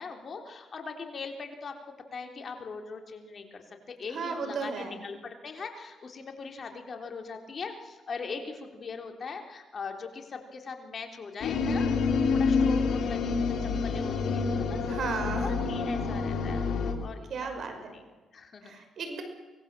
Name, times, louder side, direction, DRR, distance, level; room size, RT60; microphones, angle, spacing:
voice 1, 0.0-1.8 2.1-14.8 15.4-16.7 17.0-18.8, left 4 dB, 45° left, 4 dB, 3.7 m, -41 dB
voice 2, 4.1-5.0 14.9-15.5 17.3-17.9 18.6-19.2, right 5 dB, 60° right, 6 dB, 5.5 m, -34 dB
sound 1, 11.4-16.9, left 4 dB, 70° left, 3.9 m, -27 dB
24.5 x 20.5 x 7.6 m, 1.3 s
cardioid pair, 90°, 0 cm